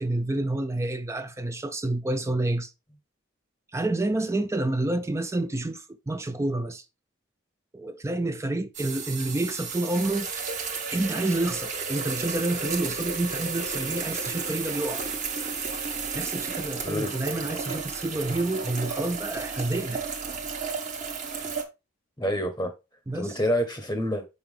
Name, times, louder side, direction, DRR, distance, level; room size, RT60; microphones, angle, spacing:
voice 1, 0.0-2.7 3.7-6.8 7.7-10.5 10.9-15.1 16.1-20.0 23.1-23.4, right 2 dB, 15° right, 0.4 m, -29 dB
sound 1, 8.7-21.6, right 5 dB, 40° right, 1.1 m, -33 dB
voice 2, 22.2-22.7 23.1-24.2, equal, 15° left, 0.8 m, -27 dB
5.7 x 5.5 x 3.2 m
head